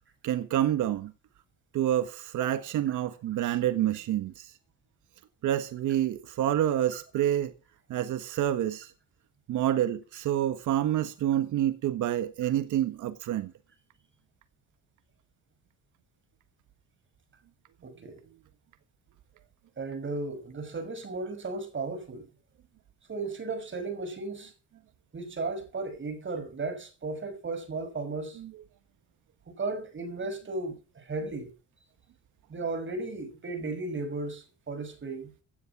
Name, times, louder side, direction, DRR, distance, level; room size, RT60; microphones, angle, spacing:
voice 1, 0.2-1.1 1.7-4.5 5.4-7.5 7.9-8.9 9.5-13.5 28.4-28.5, right 11 dB, 80° right, 1.4 m, -28 dB
voice 2, 17.8-18.2 19.8-22.3 23.1-24.5 25.1-28.4 29.5-31.5 32.5-35.3, right 3 dB, 40° right, 5.7 m, -35 dB
16.5 x 10.0 x 6.0 m
cardioid pair, 90°, 30 cm